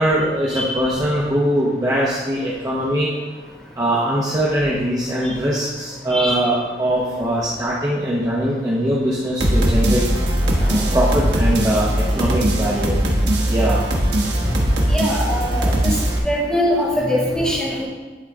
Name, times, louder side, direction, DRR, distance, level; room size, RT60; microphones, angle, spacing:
voice 1, 0.0-3.1 3.8-10.0 10.9-13.0 13.5-13.8, right 1 dB, 20° right, -6 dB, 0.9 m, -21 dB
sound 1, 9.4-16.2, right 1 dB, 75° right, 1.2 m, -19 dB
voice 2, 10.6-10.9 14.9-15.9 16.2-17.9, equal, 5° left, -8 dB, 2.3 m, -22 dB
11.5 x 4.0 x 3.6 m, 1.3 s
head